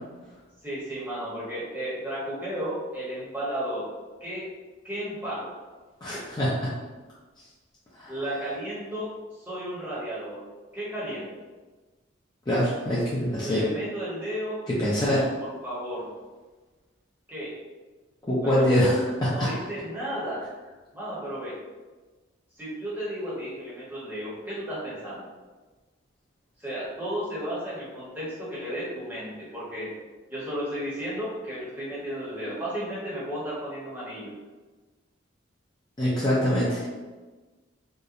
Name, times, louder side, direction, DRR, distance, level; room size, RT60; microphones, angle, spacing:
voice 1, 0.6-3.9 4.2-4.5 4.8-5.5 6.1-6.2 8.1-10.4 10.7-11.3 13.4-14.9 15.4-16.1 17.3-17.5 18.4-18.8 19.3-20.4 20.9-21.5 22.6-25.3 26.6-29.9 30.3-34.3, equal, 10° right, -9 dB, 0.8 m, -34 dB
voice 2, 6.0-6.5 8.0-8.1 12.5-13.6 14.8-15.3 18.3-19.5 36.0-36.9, equal, 20° left, -9 dB, 0.4 m, -24 dB
2.8 x 2.1 x 2.4 m, 1.3 s
head